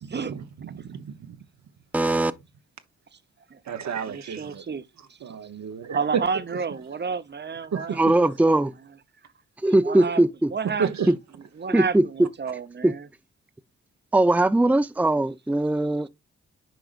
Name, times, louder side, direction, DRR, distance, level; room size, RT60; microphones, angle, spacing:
voice 1, 0.0-1.4 3.7-4.6 5.2-6.0 7.7-8.0 10.8-11.1, right 7 dB, 70° right, 1.0 m, -32 dB
voice 2, 1.9-2.3 7.9-8.7 9.6-10.5 11.1-11.2 11.7-12.0 12.8-12.9 14.1-16.1, right 1 dB, 5° right, 0.6 m, -20 dB
voice 3, 4.0-4.8 5.9-8.6 9.8-10.2 10.5-11.1 11.6-13.1, right 5 dB, 40° right, 0.9 m, -31 dB
9.1 x 4.9 x 2.5 m
supercardioid pair, 45°, 29 cm